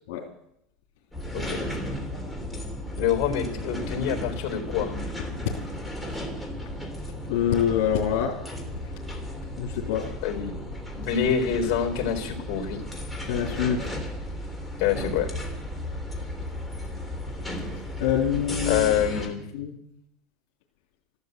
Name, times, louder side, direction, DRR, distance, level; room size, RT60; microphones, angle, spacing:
sound 1, 1.1-19.3, left 1 dB, ahead, 3.2 m, -34 dB
voice 1, 3.0-5.0 10.2-10.6 10.9-12.8 14.8-15.3 18.6-19.4, left 8 dB, 50° left, 4 dB, 4.1 m, -26 dB
voice 2, 7.3-8.4 9.6-10.1 13.3-13.9 18.0-19.1 19.5-19.7, left 9 dB, 70° left, -2 dB, 3.3 m, -25 dB
14.0 x 12.5 x 8.1 m, 0.76 s
supercardioid pair, 145°, 0 cm